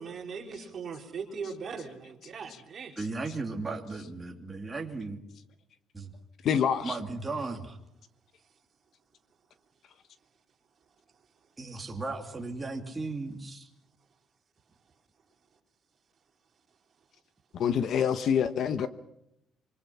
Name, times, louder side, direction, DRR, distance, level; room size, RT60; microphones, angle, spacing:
voice 1, 0.0-3.0 8.4-8.5 11.1-11.5, right 5 dB, 35° right, 1 dB, 4.4 m, -40 dB
voice 2, 3.0-5.2 5.9-6.1 6.8-7.8 11.6-13.7, right 3 dB, 15° right, 2 dB, 2.7 m, -36 dB
voice 3, 6.4-7.0 17.6-18.9, left 8 dB, 50° left, 11 dB, 1.1 m, -26 dB
26.0 x 23.5 x 5.7 m, 0.79 s
cardioid pair, 165°, 0 cm